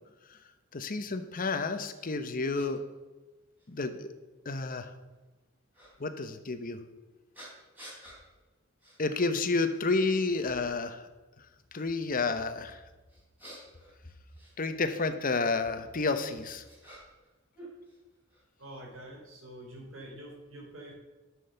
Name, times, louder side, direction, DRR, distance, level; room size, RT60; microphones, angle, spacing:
voice 1, 0.7-2.8 3.7-4.1 4.4-4.9 6.0-6.8 9.0-11.1 11.4-11.5 11.7-12.8 14.6-16.6, left 3 dB, 45° left, 9 dB, 0.9 m, -30 dB
sound 1, 1.9-2.0 2.5-2.7 3.6-3.7 5.7-5.9 7.3-8.2 8.8-9.0 9.4-9.9 10.4-10.9 13.1-15.0 16.0-17.3 17.5-18.4, right 1 dB, 10° right, 4.2 m, -51 dB
voice 2, 18.6-20.9, right 1 dB, 70° right, 0 dB, 3.2 m, -46 dB
9.8 x 6.3 x 6.8 m, 1.2 s
head